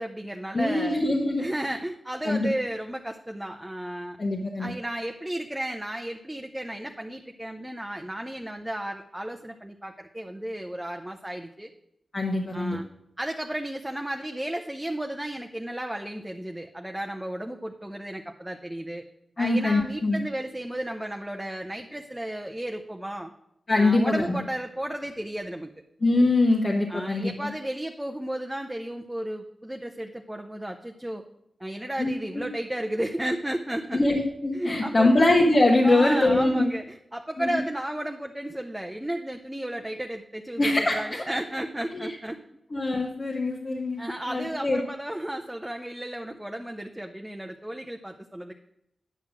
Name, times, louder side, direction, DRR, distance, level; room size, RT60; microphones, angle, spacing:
voice 1, 0.0-1.0 1.4-4.2 4.6-11.7 12.5-12.9 13.2-19.0 19.4-23.3 23.7-25.7 26.9-31.2 31.6-34.1 34.5-35.1 35.8-42.4 44.0-48.5, right 1 dB, 10° right, 3 dB, 0.7 m, -33 dB
voice 2, 0.5-1.5 2.2-2.5 4.2-4.7 12.1-12.8 19.4-20.2 23.7-24.4 26.0-27.5 32.0-32.5 33.9-36.6 37.4-37.6 40.6-41.0 41.9-42.1 42.7-44.8, left 2 dB, 45° left, 0 dB, 1.2 m, -23 dB
9.2 x 5.7 x 6.1 m, 0.80 s
cardioid pair, 60°, 0 cm